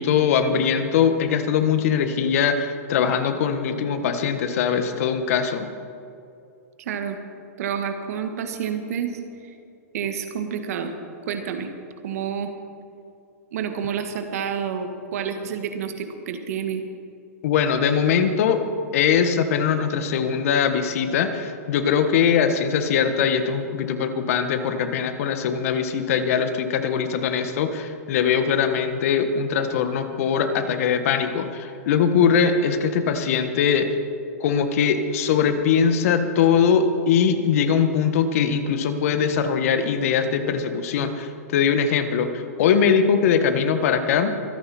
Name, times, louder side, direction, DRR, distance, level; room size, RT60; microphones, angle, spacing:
voice 1, 0.0-5.7 17.4-18.6 18.9-33.9 34.4-44.3, left 7 dB, 60° left, 8 dB, 1.4 m, -21 dB
voice 2, 6.8-7.2 7.6-9.2 9.9-10.9 11.3-11.7 12.0-12.5 13.5-16.8, right 7 dB, 65° right, 6 dB, 1.8 m, -29 dB
25.0 x 9.9 x 4.3 m, 2.5 s
hypercardioid pair, 115°, 9 cm